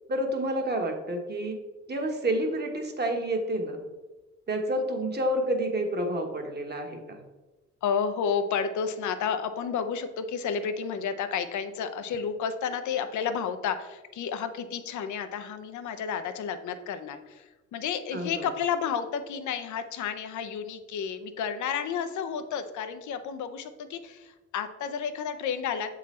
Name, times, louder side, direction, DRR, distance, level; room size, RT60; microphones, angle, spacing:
voice 1, 0.1-1.6 1.9-3.8 4.5-7.2 18.1-18.5, right 1 dB, 35° right, 3 dB, 1.3 m, -29 dB
voice 2, 7.8-25.9, left 7 dB, 75° left, 9 dB, 0.7 m, -31 dB
7.3 x 3.9 x 4.2 m, 1.2 s
cardioid pair, 90°, 30 cm